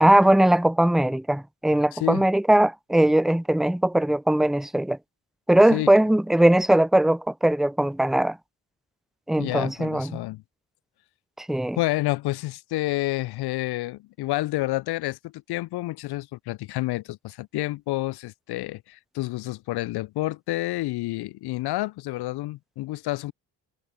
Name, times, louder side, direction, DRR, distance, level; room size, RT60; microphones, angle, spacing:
voice 1, 0.0-5.0 5.5-8.4 9.3-10.1 11.4-11.8, right 1 dB, ahead, 0.4 m, -20 dB
voice 2, 1.9-2.2 5.7-5.9 9.4-10.4 11.8-23.3, left 18 dB, 55° left, 0.5 m, -29 dB
hypercardioid pair, 45°, 49 cm